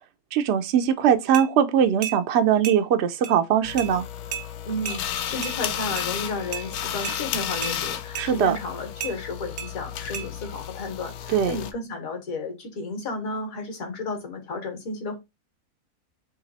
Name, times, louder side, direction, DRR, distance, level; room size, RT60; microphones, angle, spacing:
voice 1, 0.3-4.0 8.2-8.6 11.3-11.5, right 9 dB, 65° right, 0.6 m, -21 dB
sound 1, 1.3-1.5 2.0-2.2 2.6-2.8 3.2-3.4 3.8-3.9 4.3-4.5 4.9-5.0 5.4-5.6 6.0-6.1 6.5-6.7 7.1-7.2 7.6-7.8 8.2-8.3 9.0-9.2 9.6-9.7 10.1-10.3, right 9 dB, 85° right, 1.3 m, -32 dB
sound 2, 3.6-11.7, left 10 dB, 80° left, 1.1 m, -33 dB
voice 2, 4.7-15.2, left 2 dB, 65° left, 1.8 m, -33 dB
3.9 x 3.2 x 4.0 m
omnidirectional pair, 1.6 m